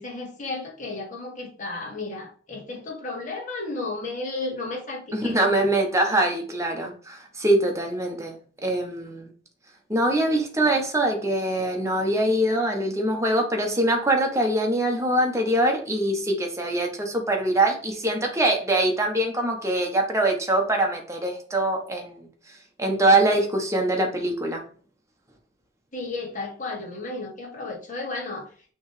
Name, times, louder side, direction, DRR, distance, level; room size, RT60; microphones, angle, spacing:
voice 1, 0.0-5.7 25.9-28.4, left 3 dB, 40° left, -2 dB, 2.7 m, -33 dB
voice 2, 5.1-8.3 8.6-9.3 9.9-22.3 22.8-24.6, right 1 dB, 15° right, 1 dB, 1.4 m, -23 dB
6.3 x 3.6 x 5.0 m, 0.43 s
head